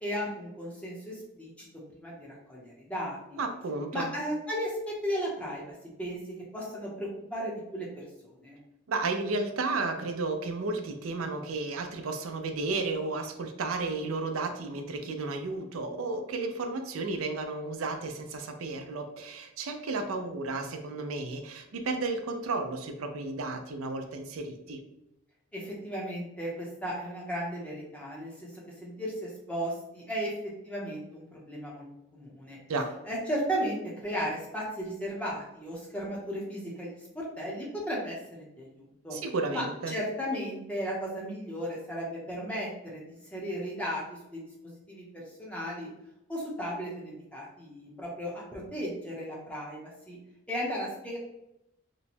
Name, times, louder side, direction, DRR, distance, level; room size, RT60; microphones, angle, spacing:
voice 1, 0.0-1.7 1.9-3.4 3.9-5.6 6.0-6.2 6.5-8.6 25.5-28.5 28.8-30.3 30.6-31.8 32.1-32.6 33.1-39.2 39.5-45.9 46.3-50.2 50.5-51.2, equal, 5° left, -5 dB, 0.8 m, -35 dB
voice 2, 3.4-4.1 8.9-24.8 32.7-32.9 39.1-39.9, right 3 dB, 85° right, 6 dB, 0.5 m, -33 dB
3.0 x 2.2 x 4.2 m, 0.87 s
head